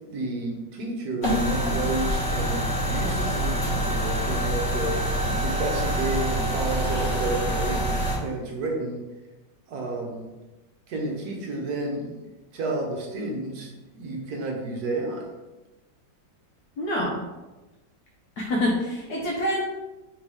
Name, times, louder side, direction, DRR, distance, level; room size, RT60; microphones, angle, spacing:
voice 1, 0.1-7.8 8.2-9.0 9.7-10.3 10.9-12.1 12.5-15.3, right 2 dB, 60° right, 0 dB, 1.3 m, -31 dB
sound 1, 1.2-8.2, right 1 dB, 40° left, 1.4 m, -26 dB
voice 2, 16.8-17.2 18.4-19.6, left 1 dB, 65° left, -4 dB, 1.1 m, -26 dB
3.6 x 2.8 x 4.7 m, 1.1 s
omnidirectional pair, 2.0 m